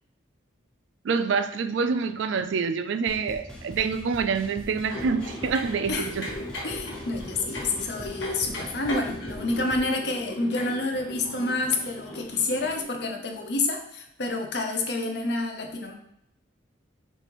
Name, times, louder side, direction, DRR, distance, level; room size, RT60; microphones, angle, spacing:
voice 1, 1.0-6.3, right 5 dB, 75° right, 10 dB, 0.3 m, -26 dB
sound 1, 3.1-9.9, equal, 5° left, 0.5 m, -43 dB
sound 2, 4.9-12.8, left 1 dB, 75° left, 1.2 m, -38 dB
voice 2, 6.6-15.9, left 2 dB, 55° left, 3 dB, 0.6 m, -28 dB
6.4 x 2.6 x 3.0 m, 0.77 s
head